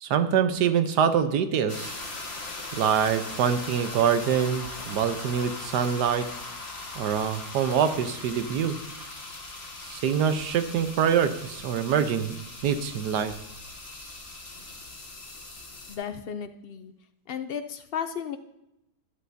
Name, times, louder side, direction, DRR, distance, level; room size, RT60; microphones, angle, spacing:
voice 1, 0.0-2.0 2.7-6.3 7.0-8.8 9.8-12.4 12.6-13.3, right 8 dB, 85° right, 9 dB, 1.4 m, -25 dB
sound 1, 1.7-16.0, left 2 dB, 40° left, 1.7 m, -40 dB
voice 2, 15.9-16.9 17.3-18.4, left 7 dB, 85° left, 9 dB, 0.5 m, -34 dB
12.5 x 11.5 x 2.7 m, 0.86 s
omnidirectional pair, 1.8 m